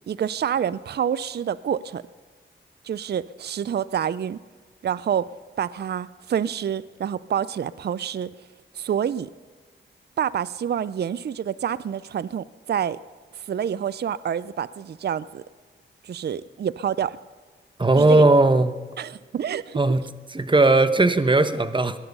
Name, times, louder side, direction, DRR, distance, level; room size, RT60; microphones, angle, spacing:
voice 1, 0.1-2.0 2.8-4.4 4.8-5.3 5.6-8.3 8.7-9.3 10.2-13.0 13.3-15.4 16.0-17.2 17.9-18.3 19.0-19.9, right 9 dB, 55° right, 18 dB, 0.4 m, -27 dB
voice 2, 17.8-18.8 19.7-20.0 20.3-22.0, right 2 dB, 25° right, 11 dB, 1.0 m, -18 dB
18.5 x 11.0 x 5.4 m, 1.5 s
cardioid pair, 50°, 21 cm